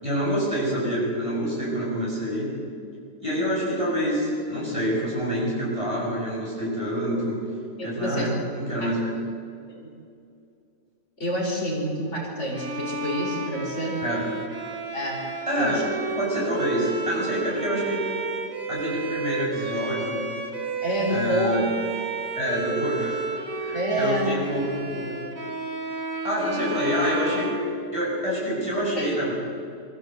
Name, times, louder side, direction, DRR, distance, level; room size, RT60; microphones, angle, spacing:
voice 1, 0.0-2.5 3.2-7.5 7.8-9.2 14.0-14.3 15.5-15.8 16.2-18.1 18.7-20.3 21.1-21.7 22.4-25.1 26.2-27.6 27.9-29.3, equal, 20° right, -5 dB, 7.3 m, -27 dB
voice 2, 7.8-8.3 9.7-9.9 11.2-14.0 14.9-15.2 15.6-15.8 20.8-21.6 23.7-24.3 29.0-29.1, equal, 55° left, -2 dB, 4.6 m, -28 dB
Bowed string instrument, 12.5-28.4, right 3 dB, 75° right, 2.3 m, -32 dB
24.0 x 15.0 x 7.9 m, 2.5 s
omnidirectional pair, 1.4 m